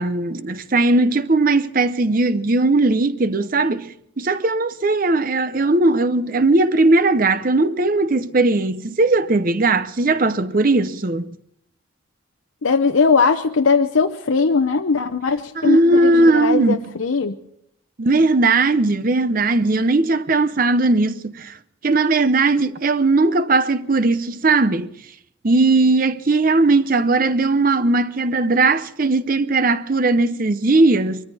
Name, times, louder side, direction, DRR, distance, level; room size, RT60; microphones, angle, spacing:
voice 1, 0.0-11.4 15.6-16.8 18.0-21.5 21.8-24.9 25.4-31.2, right 2 dB, 45° right, 0.7 m, -18 dB
voice 2, 12.6-17.3, left 4 dB, 90° left, 0.7 m, -19 dB
23.5 x 14.0 x 4.1 m
head